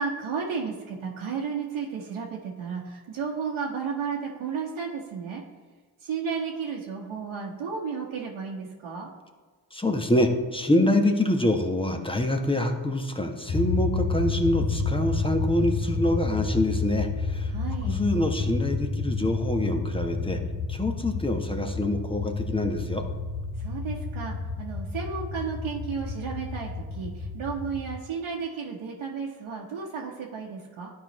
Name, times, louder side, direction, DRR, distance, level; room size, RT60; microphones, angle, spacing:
voice 1, 0.0-5.4 6.0-9.1 17.5-17.9 23.6-30.9, right 6 dB, 70° right, -3 dB, 1.2 m, -33 dB
voice 2, 9.7-17.5 17.9-20.4 20.7-23.0, left 1 dB, 10° left, 4 dB, 1.2 m, -25 dB
sound 1, 13.5-27.9, left 3 dB, 50° left, 1.4 m, -30 dB
11.5 x 4.7 x 3.1 m, 1.4 s
supercardioid pair, 45°, 49 cm